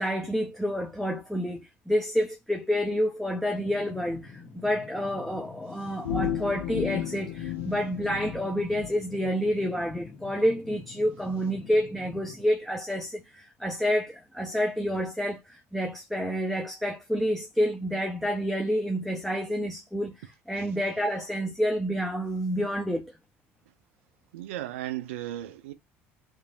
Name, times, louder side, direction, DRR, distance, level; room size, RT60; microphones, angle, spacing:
voice 1, 0.0-23.1, equal, ahead, 0.6 m, -29 dB
sound 1, 3.6-12.4, left 4 dB, 35° left, 1.0 m, -46 dB
sound 2, 6.0-8.9, left 9 dB, 85° left, 0.6 m, -33 dB
voice 2, 24.3-25.7, right 14 dB, 75° right, 0.4 m, -35 dB
2.9 x 2.5 x 2.6 m
hypercardioid pair, 65°, 7 cm